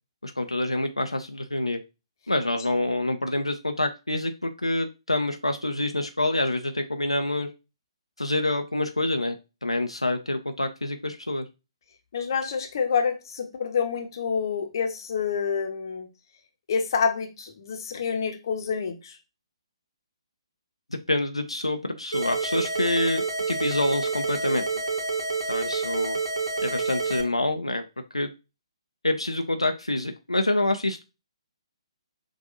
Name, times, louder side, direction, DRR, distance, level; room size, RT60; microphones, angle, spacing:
voice 1, 0.2-1.8 2.3-7.5 8.2-9.4 9.6-11.5 20.9-24.8 25.5-26.2 26.6-27.8 28.1-28.3 29.0-31.0, left 1 dB, 85° left, 6 dB, 0.5 m, -27 dB
voice 2, 12.1-16.1 16.7-19.2, left 6 dB, 45° left, 4 dB, 0.9 m, -27 dB
sound 1, 22.1-27.2, right 4 dB, 65° right, 1.3 m, -28 dB
6.2 x 2.5 x 2.6 m, 0.27 s
figure-of-eight pair, 135°, 3 cm